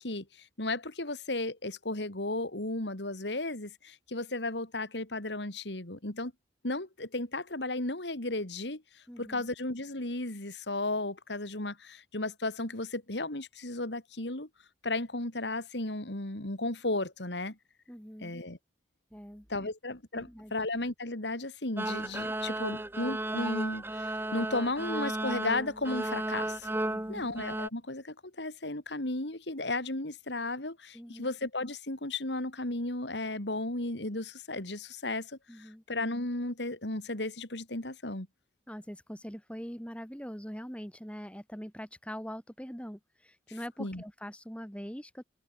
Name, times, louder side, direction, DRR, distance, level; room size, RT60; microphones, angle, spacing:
voice 1, 0.0-6.3 6.6-14.5 14.8-17.6 18.2-18.6 19.5-26.7 27.1-38.3 43.8-44.0, left 2 dB, 85° left, 3.5 m, -34 dB
voice 2, 9.1-9.5 17.9-18.3 19.1-19.7 20.1-20.5 26.9-27.3 30.9-31.3 35.5-35.8 38.7-45.2, equal, 5° left, 5.4 m, -43 dB
sound 1, 21.8-27.7, right 1 dB, 10° right, 1.6 m, -34 dB
head